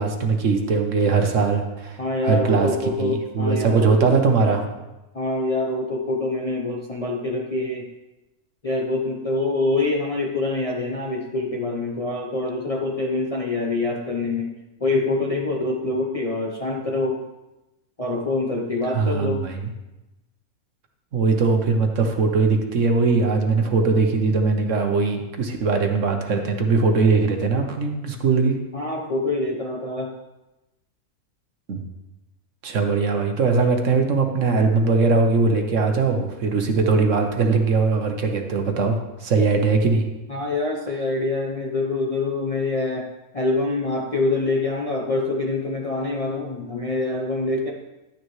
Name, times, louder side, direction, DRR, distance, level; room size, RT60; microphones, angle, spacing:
voice 1, 0.0-2.7 3.0-4.7 18.9-19.7 21.1-28.6 31.7-31.8 32.6-40.0, right 4 dB, 60° right, 4 dB, 1.3 m, -20 dB
voice 2, 2.0-4.1 5.1-7.9 8.6-14.5 14.8-17.2 18.0-19.4 28.7-30.1 40.3-43.1 43.3-47.7, left 2 dB, 30° left, -1 dB, 0.7 m, -25 dB
11.5 x 9.2 x 3.1 m, 1.0 s
omnidirectional pair, 1.6 m